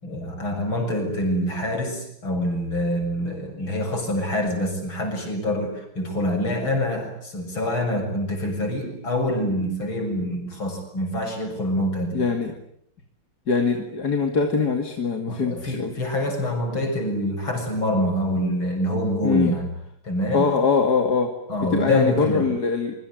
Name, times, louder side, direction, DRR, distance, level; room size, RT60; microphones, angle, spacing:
voice 1, 0.0-12.2 15.3-19.7 20.0-20.5 21.5-22.5, left 1 dB, 65° left, 4 dB, 8.0 m, -25 dB
voice 2, 12.1-12.5 13.5-15.9 19.2-19.5 20.3-21.3 21.6-22.9, left 5 dB, 45° left, 5 dB, 2.9 m, -22 dB
25.5 x 24.5 x 9.3 m, 0.70 s
omnidirectional pair, 2.4 m